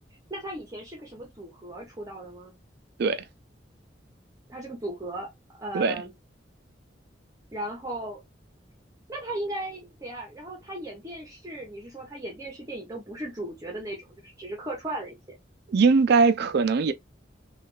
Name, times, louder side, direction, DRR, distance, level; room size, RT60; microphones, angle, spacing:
voice 1, 0.3-2.5 4.5-5.3 5.6-6.1 7.5-8.2 9.1-15.1, right 1 dB, 20° right, 0.8 m, -36 dB
voice 2, 15.7-16.9, right 4 dB, 60° right, 0.4 m, -21 dB
3.2 x 2.4 x 3.1 m
head